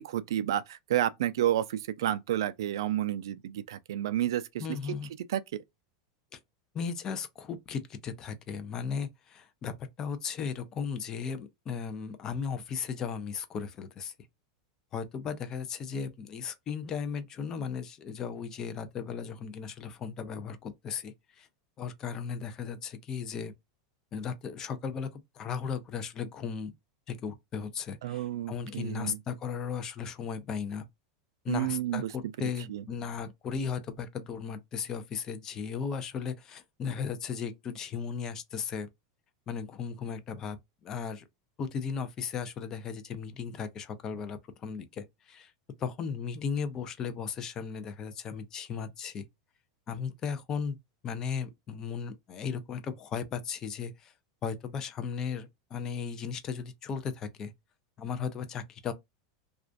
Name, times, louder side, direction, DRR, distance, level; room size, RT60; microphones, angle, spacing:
voice 1, 0.0-4.5 5.3-5.4 28.0-29.2 31.5-32.1 32.7-32.8, right 12 dB, 85° right, 0.3 m, -30 dB
voice 2, 4.6-5.1 6.3-6.4 6.7-14.1 14.9-21.5 21.8-23.5 24.1-25.1 25.3-26.7 27.1-30.8 31.4-38.9 39.5-41.2 41.6-45.5 45.8-49.2 49.9-50.8 51.0-54.1 54.4-57.5 58.0-58.9, left 6 dB, 25° left, 0.4 m, -36 dB
2.4 x 2.1 x 2.4 m
supercardioid pair, 155°, 2 cm